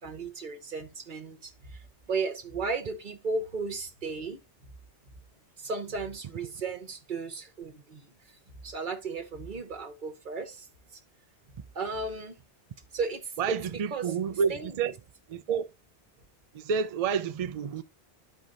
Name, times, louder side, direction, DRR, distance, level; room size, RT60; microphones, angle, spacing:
voice 1, 0.0-4.4 5.6-8.4 8.6-11.0 11.7-12.4 12.9-13.3 13.9-14.1 14.5-14.7, right 4 dB, 45° right, 1.2 m, -35 dB
voice 2, 13.4-14.9 15.3-15.7 16.5-17.8, right 6 dB, 75° right, 0.3 m, -29 dB
12.0 x 4.5 x 2.5 m
omnidirectional pair, 1.2 m